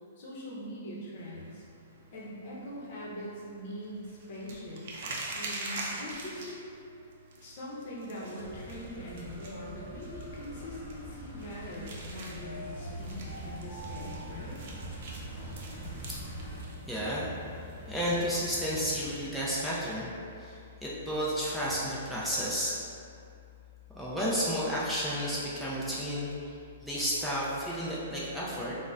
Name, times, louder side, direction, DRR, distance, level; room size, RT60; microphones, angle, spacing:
voice 1, 0.2-1.6 2.1-6.6 7.4-14.6, left 1 dB, 50° left, -5 dB, 0.7 m, -42 dB
sound 1, 1.2-19.7, right 2 dB, 55° right, 0.5 m, -46 dB
sound 2, 8.4-16.6, right 1 dB, 15° left, 1.0 m, -43 dB
sound 3, 12.9-19.1, equal, 40° right, 0.9 m, -47 dB
voice 2, 16.9-17.3 17.6-22.7 23.9-28.8, equal, ahead, -9 dB, 0.4 m, -32 dB
3.8 x 2.1 x 2.5 m, 2.5 s
hypercardioid pair, 140°, 0 cm